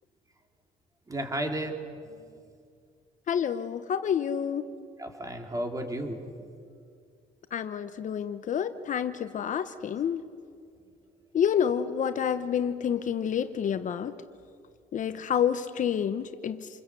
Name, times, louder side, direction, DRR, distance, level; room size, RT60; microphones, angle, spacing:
voice 1, 1.1-1.7 2.0-2.4 5.0-6.2, right 1 dB, 20° right, 4 dB, 3.4 m, -33 dB
voice 2, 3.3-4.7 7.5-10.2 11.3-14.1 14.9-16.7, left 8 dB, 50° left, 11 dB, 1.0 m, -28 dB
28.0 x 22.0 x 8.4 m, 2.3 s
cardioid pair, 110°, 17 cm